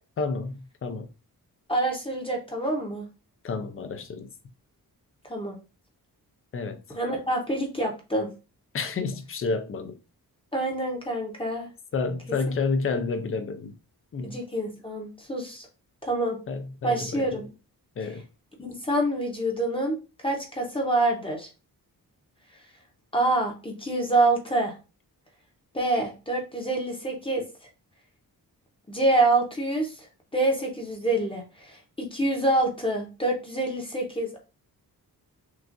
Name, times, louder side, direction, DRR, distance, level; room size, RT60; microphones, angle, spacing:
voice 1, 0.2-1.1 3.4-4.3 6.5-6.8 8.7-10.0 11.9-13.7 14.1-14.4 16.5-17.4 18.0-18.2, left 4 dB, 35° left, 0.5 m, -30 dB
voice 2, 1.7-3.1 5.3-5.6 6.9-8.3 10.5-11.7 14.2-15.7 16.0-16.4 16.8-17.5 18.6-20.0 20.2-21.5 23.1-24.7 25.7-27.4 28.9-30.1 30.3-34.4, right 2 dB, 15° left, 0.8 m, -26 dB
6.0 x 2.4 x 2.6 m
wide cardioid pair, 170°, 38 cm